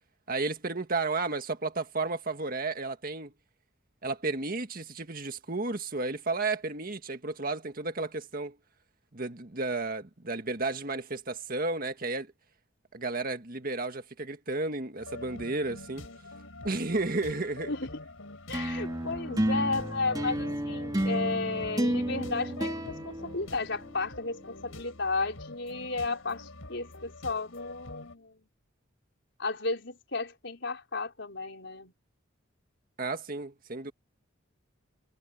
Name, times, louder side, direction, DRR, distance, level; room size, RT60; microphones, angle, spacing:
voice 1, 0.3-3.3 4.0-8.5 9.1-12.3 12.9-16.1 16.6-17.7 33.0-33.9, right 3 dB, 45° right, 1.8 m, -32 dB
sound 1, 15.0-28.2, left 2 dB, 90° left, 4.7 m, -46 dB
voice 2, 18.5-28.4 29.4-31.9, left 3 dB, 60° left, 5.0 m, -33 dB
sound 2, 18.5-24.1, right 1 dB, 20° right, 2.6 m, -31 dB
head